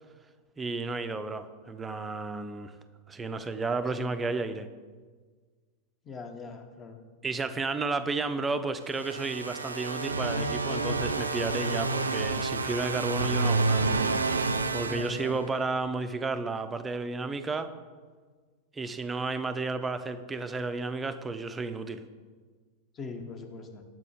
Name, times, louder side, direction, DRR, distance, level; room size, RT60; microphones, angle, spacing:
voice 1, 0.6-2.7 3.1-4.7 7.2-13.9 14.7-17.7 18.7-22.0, right 3 dB, 15° right, 10 dB, 0.4 m, -32 dB
voice 2, 6.0-7.0 14.9-15.4 22.9-23.8, left 4 dB, 25° left, 5 dB, 0.8 m, -41 dB
sound 1, 8.9-15.8, right 3 dB, 75° right, 0.4 m, -29 dB
7.3 x 4.8 x 4.7 m, 1.5 s
figure-of-eight pair, 90°, 0 cm